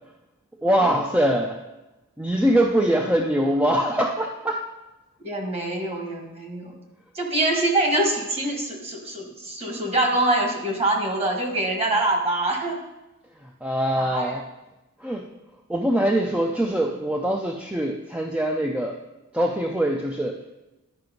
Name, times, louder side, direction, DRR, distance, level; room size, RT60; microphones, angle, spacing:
voice 1, 0.6-1.6 2.2-4.6 13.6-14.4 15.0-15.3 15.7-19.0 19.3-20.4, right 1 dB, 5° right, 2 dB, 0.4 m, -23 dB
voice 2, 5.2-6.8 7.2-12.8 14.0-14.4, right 2 dB, 30° right, 1 dB, 1.6 m, -24 dB
10.5 x 5.8 x 5.2 m, 1.0 s
head